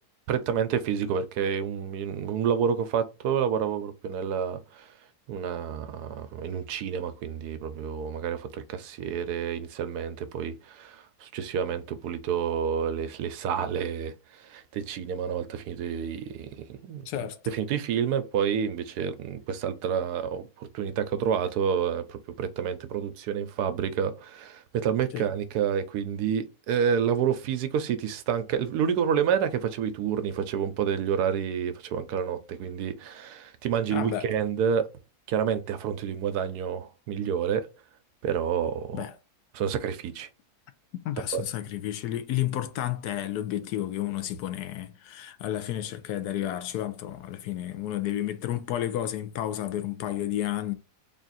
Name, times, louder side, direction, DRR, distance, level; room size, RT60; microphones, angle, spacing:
voice 1, 0.3-4.9 5.3-14.1 14.4-17.1 17.5-34.9 35.3-37.7 38.2-39.1 39.5-40.3 41.3-41.4, right 7 dB, 80° right, 1.1 m, -29 dB
voice 2, 17.1-17.4 25.1-25.3 33.9-34.3 38.9-39.2 41.0-50.7, left 12 dB, 80° left, 1.1 m, -31 dB
3.7 x 2.5 x 4.0 m
omnidirectional pair, 1.7 m